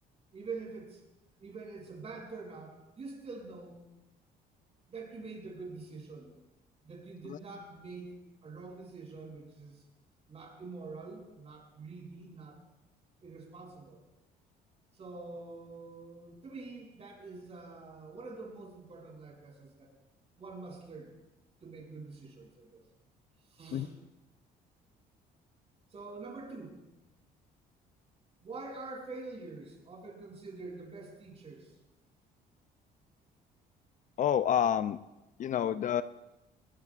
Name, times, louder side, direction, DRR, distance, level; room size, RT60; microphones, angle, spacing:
voice 1, 0.3-1.0 1.4-3.8 4.9-6.3 6.8-9.8 10.3-12.6 13.2-14.0 14.9-19.9 20.4-21.1 21.6-22.8 23.5-23.9 25.9-26.8 28.4-31.7, right 3 dB, 40° right, -1 dB, 7.3 m, -45 dB
voice 2, 34.2-35.0 35.4-36.0, left 9 dB, 50° left, 13 dB, 0.5 m, -28 dB
21.5 x 19.5 x 2.5 m, 0.98 s
cardioid pair, 110°, 17 cm